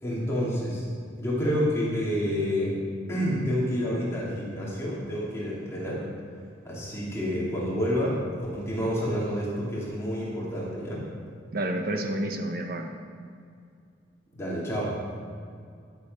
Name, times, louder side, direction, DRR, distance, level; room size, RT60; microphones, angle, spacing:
voice 1, 0.0-0.9 1.2-2.8 3.1-6.1 6.6-8.2 8.5-11.1 14.3-15.0, equal, 15° left, -6 dB, 2.7 m, -28 dB
voice 2, 11.5-12.9, right 1 dB, 50° right, 4 dB, 1.2 m, -29 dB
15.5 x 7.4 x 5.4 m, 2.3 s
head